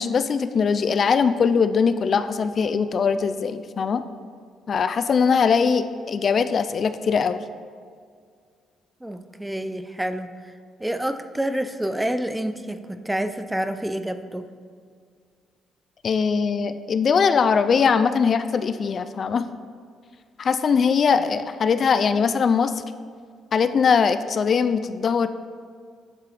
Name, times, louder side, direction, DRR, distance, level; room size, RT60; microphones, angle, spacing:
voice 1, 0.0-4.0 4.7-7.4 16.0-19.4 20.4-22.7 23.5-25.3, left 6 dB, 50° left, 12 dB, 0.4 m, -21 dB
voice 2, 9.0-10.5 10.8-14.5, right 1 dB, 5° right, 10 dB, 0.5 m, -28 dB
10.5 x 7.3 x 3.4 m, 2.1 s
cardioid pair, 90°, 0 cm